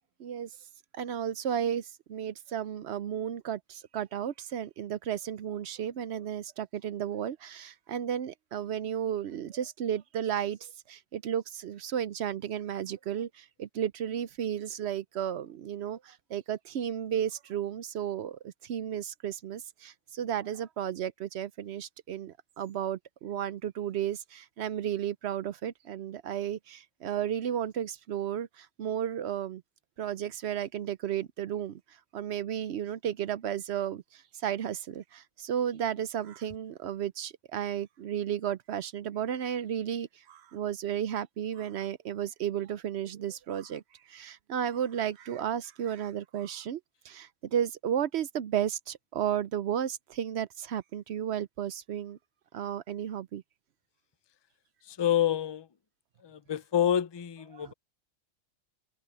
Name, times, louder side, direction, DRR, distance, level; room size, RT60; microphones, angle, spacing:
voice 1, 0.2-0.5 0.9-29.6 30.0-31.8 32.1-43.8 44.1-52.2 52.5-53.4 57.5-57.7, right 9 dB, 65° right, 0.8 m, -33 dB
voice 2, 54.9-55.7 56.2-57.7, left 10 dB, 35° left, 0.4 m, -28 dB
omnidirectional pair, 1.3 m